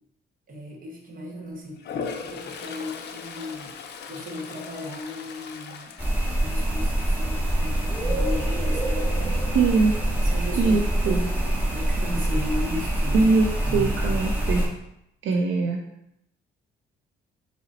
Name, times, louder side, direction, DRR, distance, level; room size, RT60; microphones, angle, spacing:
voice 1, 0.5-3.7 4.1-6.0 6.3-9.4 10.2-10.8 11.0-13.2 13.6-13.9 15.3-15.4, left 1 dB, 45° right, 0 dB, 1.0 m, -36 dB
Toilet flush, 1.8-7.0 7.4-7.7 12.2-12.3 12.6-13.3, left 5 dB, 60° left, 0.4 m, -38 dB
sound 1, 6.0-14.7, right 1 dB, 10° right, 1.1 m, -25 dB
voice 2, 9.5-9.9 10.6-11.2 13.1-13.5 13.7-14.7 15.2-15.8, right 4 dB, 75° right, 0 dB, 0.5 m, -22 dB
3.8 x 2.1 x 4.0 m, 0.80 s
cardioid pair, 90°, 20 cm